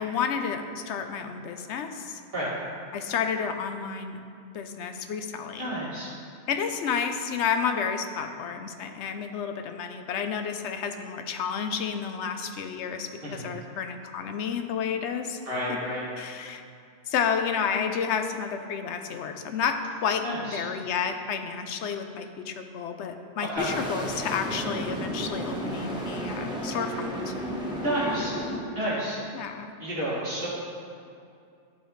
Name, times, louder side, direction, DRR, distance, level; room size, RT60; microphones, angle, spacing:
voice 1, 0.0-2.2 2.9-4.2 4.5-5.8 6.5-15.4 15.7-15.8 16.2-16.6 17.1-27.3 29.3-29.7, left 6 dB, 85° left, 7 dB, 0.9 m, -31 dB
voice 2, 5.6-6.1 13.2-13.5 15.5-16.1 20.2-20.6 23.5-23.7 27.8-28.3 28.7-29.2 29.8-30.5, equal, 60° right, -8 dB, 2.3 m, -30 dB
sound 1, 23.6-28.6, equal, 5° right, 1.1 m, -33 dB
12.5 x 4.8 x 3.1 m, 2.4 s
omnidirectional pair, 1.1 m